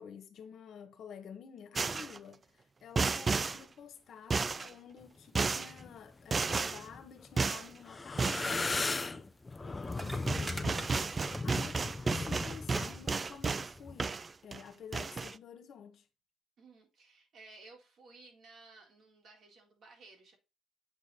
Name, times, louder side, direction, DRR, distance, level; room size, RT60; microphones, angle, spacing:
voice 1, 0.0-8.7 9.0-14.2 14.4-16.0, left 7 dB, 70° left, 1.5 m, -51 dB
sound 1, 1.8-2.2 3.0-3.6 4.3-4.7 5.4-5.7 6.3-6.8 7.4-7.7 8.2-8.5 9.9-10.0 10.3-13.7 14.0-14.6 14.9-15.3, right 4 dB, 35° right, 0.4 m, -32 dB
sound 2, 5.6-6.0 6.5-7.5 7.8-14.0, left 3 dB, 20° left, 0.7 m, -37 dB
sound 3, 9.6-9.7 9.9-11.8 12.1-12.4 12.7-12.8 13.1-13.6 14.4-14.5, right 1 dB, 15° right, 1.4 m, -43 dB
voice 2, 16.6-20.4, right 3 dB, 65° right, 3.8 m, -57 dB
8.0 x 5.2 x 4.0 m
cardioid pair, 90°, 0 cm